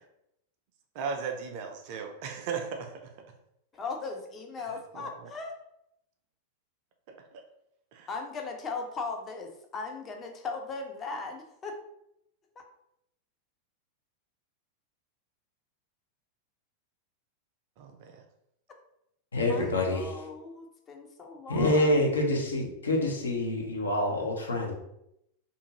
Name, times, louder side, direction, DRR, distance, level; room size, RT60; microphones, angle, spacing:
voice 1, 0.9-3.0 4.6-5.3 7.1-7.4 7.9-8.1 17.8-18.2, right 5 dB, 45° right, 4 dB, 0.5 m, -37 dB
voice 2, 3.7-5.5 8.1-11.8 12.6-12.7 19.4-22.2, left 4 dB, 25° left, 2 dB, 0.5 m, -38 dB
voice 3, 19.3-20.1 21.5-24.7, left 1 dB, 70° left, 0 dB, 0.7 m, -26 dB
2.6 x 2.5 x 2.9 m, 0.79 s
figure-of-eight pair, 90°, 0 cm